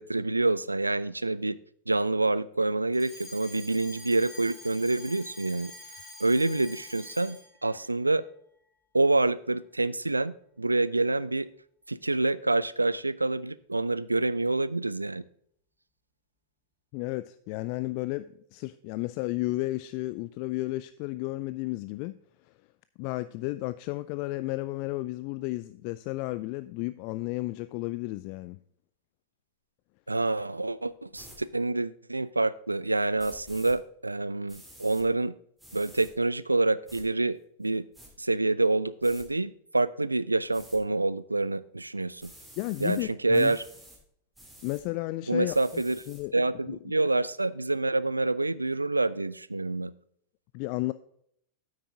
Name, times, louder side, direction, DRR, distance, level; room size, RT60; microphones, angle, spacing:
voice 1, 0.0-1.6 1.9-5.7 6.2-8.2 8.9-11.5 11.9-15.2 30.1-35.3 35.7-37.9 38.2-42.3 42.8-43.6 45.3-46.0 46.3-49.9, right 2 dB, 80° right, 0.3 m, -27 dB
Alarm, 2.9-7.6, left 2 dB, 15° left, 3.6 m, -46 dB
voice 2, 16.9-22.2 22.4-22.5 23.0-28.6 42.6-43.6 44.6-45.8 46.1-46.3 46.7-46.8 50.5-50.9, left 19 dB, 45° left, 0.3 m, -33 dB
sound 1, 31.1-31.4 33.2-33.7 34.5-35.0 35.6-36.1 36.9-37.0 37.6-38.1 39.0-39.3 40.5-40.8 42.2-43.1 43.3-44.0 44.3-44.8 45.4-46.2, right 1 dB, 5° right, 2.8 m, -50 dB
9.1 x 8.8 x 3.7 m
figure-of-eight pair, 90°, 0 cm